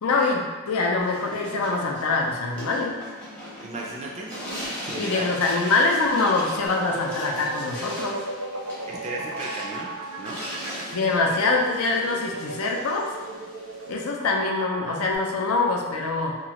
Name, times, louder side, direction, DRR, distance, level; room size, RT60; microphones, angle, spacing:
voice 1, 0.0-3.0 5.0-8.3 10.9-13.1 13.9-16.4, left 3 dB, 75° left, 0 dB, 0.5 m, -24 dB
sound 1, 1.0-14.0, equal, 5° left, 0.6 m, -39 dB
voice 2, 3.6-4.3 4.8-5.3 8.9-9.9 10.2-10.4, right 2 dB, 30° right, -2 dB, 0.3 m, -34 dB
sound 2, 6.7-15.1, right 2 dB, 85° right, 0.5 m, -36 dB
2.9 x 2.4 x 2.8 m, 1.3 s
head